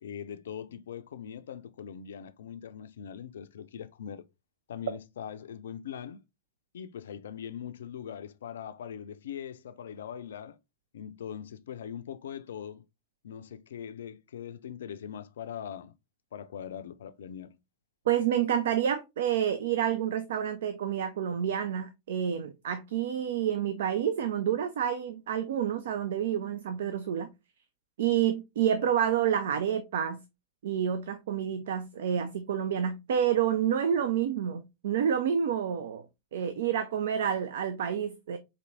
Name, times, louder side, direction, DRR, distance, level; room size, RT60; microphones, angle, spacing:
voice 1, 0.0-4.2 4.7-6.2 6.7-10.6 10.9-12.8 13.2-15.9 16.3-17.6, left 8 dB, 65° left, 0.4 m, -41 dB
voice 2, 18.1-27.3 28.0-30.2 30.6-36.0 36.3-38.4, right 9 dB, 60° right, 0.3 m, -29 dB
4.2 x 2.7 x 2.5 m
figure-of-eight pair, 90°, 0 cm